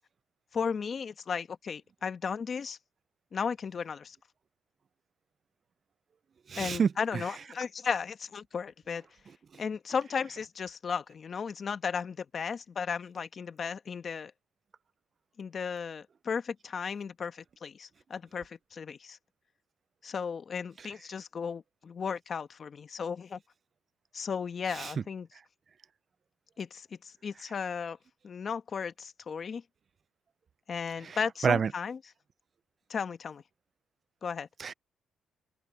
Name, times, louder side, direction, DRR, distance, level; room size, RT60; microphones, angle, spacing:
voice 1, 0.5-2.8 3.3-4.2 6.6-9.1 9.6-14.3 15.4-19.2 20.0-23.4 24.1-25.3 26.6-28.0 28.2-29.6 30.7-32.0 32.9-33.4 34.2-34.5, left 6 dB, 45° left, 1.3 m, -35 dB
voice 2, 6.5-6.9 9.5-9.6 24.7-24.9 31.0-31.2 31.4-31.7 34.6-34.7, right 6 dB, 45° right, 0.5 m, -27 dB
open air
cardioid pair, 90°, 0 cm